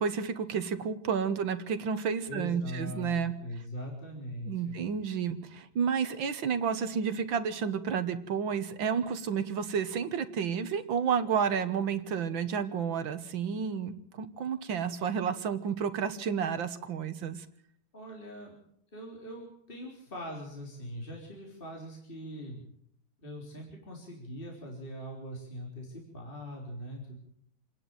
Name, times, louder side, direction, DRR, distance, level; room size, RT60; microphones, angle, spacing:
voice 1, 0.0-3.3 4.5-17.5, right 7 dB, 65° right, 11 dB, 2.0 m, -31 dB
voice 2, 2.3-4.8 17.9-18.6 18.9-22.6 23.2-27.1, equal, 25° left, -1 dB, 4.1 m, -41 dB
27.5 x 11.0 x 9.0 m, 0.70 s
omnidirectional pair, 2.3 m